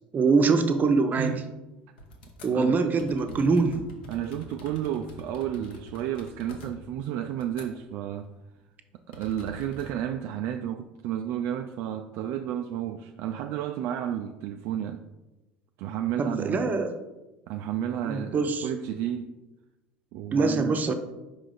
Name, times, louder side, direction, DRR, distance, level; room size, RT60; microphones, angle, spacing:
voice 1, 0.1-1.3 2.4-3.8 16.2-16.9 18.0-18.7 20.3-20.9, right 4 dB, 35° right, 0.8 m, -23 dB
voice 2, 1.2-1.5 2.5-2.9 4.1-8.3 9.1-15.0 15.8-16.6 17.5-19.3 20.1-20.9, right 10 dB, 55° right, 0.4 m, -32 dB
sound 1, 2.0-2.6 3.0-8.0 8.2-8.4 9.1-9.9, equal, 75° left, 1.1 m, -46 dB
5.5 x 4.8 x 4.0 m
figure-of-eight pair, 65°, 5 cm